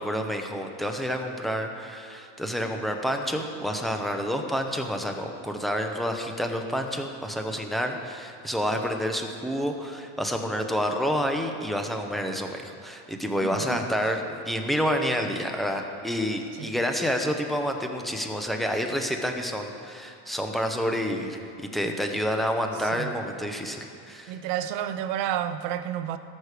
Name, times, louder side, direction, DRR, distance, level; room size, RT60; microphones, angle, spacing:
voice 1, 0.0-24.4, equal, ahead, 3 dB, 0.8 m, -29 dB
voice 2, 13.4-13.8 16.6-16.7 22.9-23.1 24.3-26.2, right 10 dB, 55° right, 10 dB, 0.9 m, -30 dB
18.5 x 6.4 x 5.0 m, 2.7 s
supercardioid pair, 125°, 47 cm